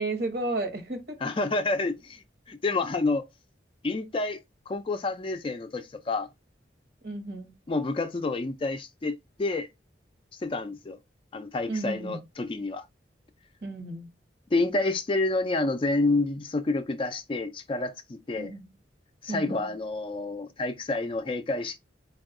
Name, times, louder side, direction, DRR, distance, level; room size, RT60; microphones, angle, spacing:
voice 1, 0.0-1.2 7.0-7.6 11.7-12.2 13.6-14.1 18.4-18.7 19.3-19.7, right 2 dB, 55° right, 1.0 m, -33 dB
voice 2, 1.2-2.2 2.5-3.2 3.8-4.4 4.7-6.3 7.7-9.7 10.4-11.0 11.3-12.8 14.5-18.5 19.2-21.8, left 2 dB, 30° left, 0.4 m, -29 dB
4.3 x 2.3 x 3.6 m
head